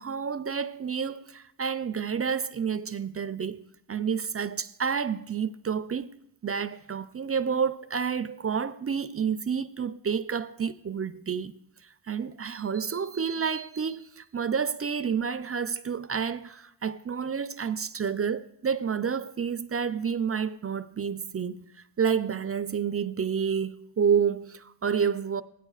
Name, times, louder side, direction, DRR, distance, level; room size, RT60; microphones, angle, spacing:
voice 1, 0.0-6.1 6.4-11.5 12.1-21.7 22.0-25.4, right 6 dB, 30° right, 0.4 m, -29 dB
16.0 x 10.0 x 2.4 m
cardioid pair, 55°, 49 cm